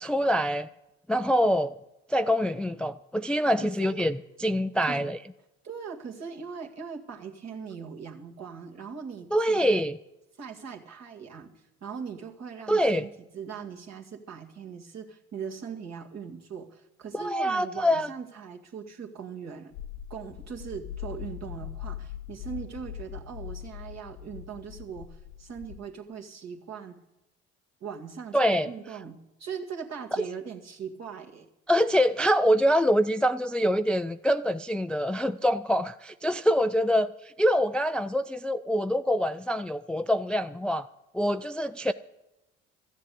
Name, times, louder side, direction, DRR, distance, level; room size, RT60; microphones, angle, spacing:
voice 1, 0.0-0.7 1.1-1.8 2.1-5.2 9.3-10.0 12.7-13.1 17.1-18.1 28.3-28.7 31.7-40.9 41.1-41.9, equal, 5° left, 12 dB, 0.3 m, -25 dB
voice 2, 3.6-4.0 4.8-5.1 5.6-9.8 10.4-19.7 20.1-27.0 27.8-31.5, right 6 dB, 50° right, 1 dB, 2.0 m, -40 dB
sound 1, 19.7-25.8, left 11 dB, 70° left, 0.8 m, -41 dB
13.5 x 7.5 x 8.4 m, 0.92 s
hypercardioid pair, 55°, 33 cm